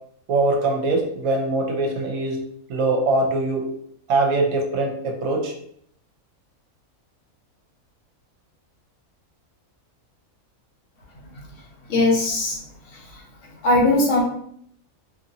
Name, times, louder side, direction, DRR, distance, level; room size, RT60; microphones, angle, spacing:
voice 1, 0.3-2.4 2.7-3.6 4.1-5.5, right 2 dB, 75° right, 2 dB, 1.0 m, -22 dB
voice 2, 11.9-12.6 12.9-14.2, left 2 dB, 65° left, -2 dB, 1.0 m, -20 dB
2.8 x 2.6 x 2.7 m, 0.67 s
omnidirectional pair, 1.5 m